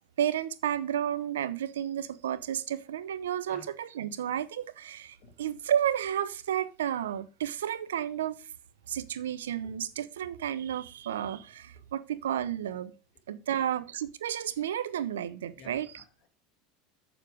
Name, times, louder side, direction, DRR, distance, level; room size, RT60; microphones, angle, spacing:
voice 1, 0.2-8.5 8.9-12.9 13.3-16.0, right 10 dB, 85° right, 0.7 m, -32 dB
voice 2, 15.5-16.3, left 6 dB, 55° left, 2.0 m, -53 dB
7.0 x 6.8 x 5.0 m
hypercardioid pair, 90°, 0 cm